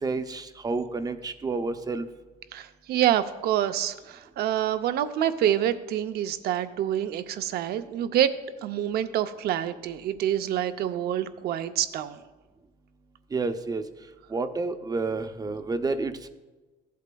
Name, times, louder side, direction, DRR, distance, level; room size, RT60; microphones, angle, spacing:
voice 1, 0.0-2.1 13.3-13.8 14.3-16.3, right 3 dB, 20° right, 9 dB, 0.5 m, -30 dB
voice 2, 2.5-8.3 8.6-12.2, right 11 dB, 70° right, 11 dB, 0.6 m, -27 dB
15.0 x 8.3 x 2.3 m, 1.2 s
cardioid pair, 110°, 17 cm